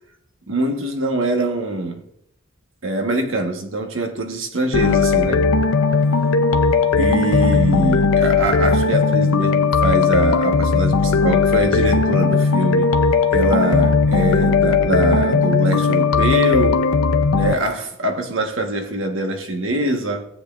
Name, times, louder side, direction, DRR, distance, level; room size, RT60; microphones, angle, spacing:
voice 1, 0.5-2.0 2.8-5.6 7.0-13.0 13.3-16.8 17.3-20.3, right 1 dB, 65° right, 1.4 m, -23 dB
sound 1, 4.7-17.5, left 4 dB, 85° left, 0.6 m, -17 dB
17.5 x 7.9 x 2.6 m
head